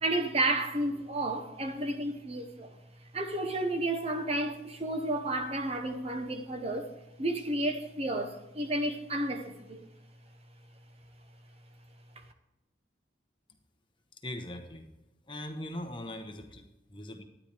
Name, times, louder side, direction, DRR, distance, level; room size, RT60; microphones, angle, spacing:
voice 1, 0.0-6.9 7.2-9.9, right 1 dB, 30° right, 0.8 m, -32 dB
voice 2, 14.1-14.9 15.2-17.2, left 1 dB, 25° left, 1.0 m, -41 dB
12.0 x 9.8 x 3.4 m
head